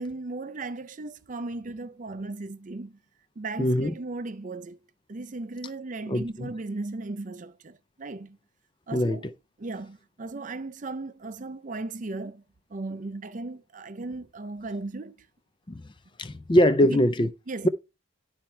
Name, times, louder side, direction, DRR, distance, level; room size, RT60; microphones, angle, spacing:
voice 1, 0.0-3.0 3.4-4.8 5.1-8.4 8.9-9.3 9.6-12.4 12.7-15.3 16.9-17.0 17.5-17.7, right 2 dB, 40° right, 0.5 m, -36 dB
voice 2, 3.6-3.9 6.1-6.5 8.9-9.2 15.7-15.8 16.2-17.3, equal, 25° left, 0.5 m, -22 dB
11.5 x 4.4 x 4.4 m
head